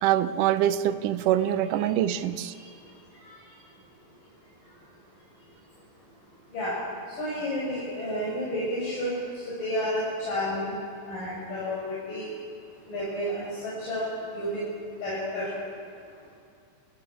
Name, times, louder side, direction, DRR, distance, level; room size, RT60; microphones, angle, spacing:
voice 1, 0.0-2.5, right 12 dB, 75° right, 2.3 m, -24 dB
voice 2, 7.2-9.1 9.6-10.8 11.1-11.8 12.1-12.3 12.9-14.1 14.3-14.6 15.0-15.5, equal, 75° left, 7.9 m, -30 dB
29.0 x 15.0 x 8.6 m
omnidirectional pair, 3.9 m